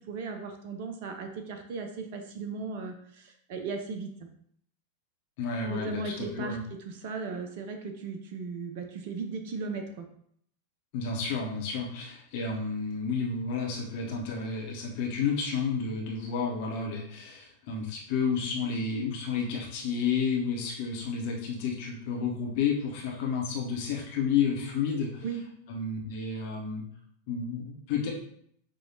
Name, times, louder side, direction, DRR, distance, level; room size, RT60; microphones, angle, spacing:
voice 1, 0.1-4.1 5.7-10.1 25.2-25.4, right 4 dB, 50° right, 5 dB, 0.6 m, -37 dB
voice 2, 5.4-6.6 10.9-25.2 25.7-26.8 27.3-28.1, left 5 dB, 45° left, -1 dB, 1.2 m, -31 dB
6.4 x 2.7 x 2.9 m, 0.66 s
figure-of-eight pair, 90°, 0 cm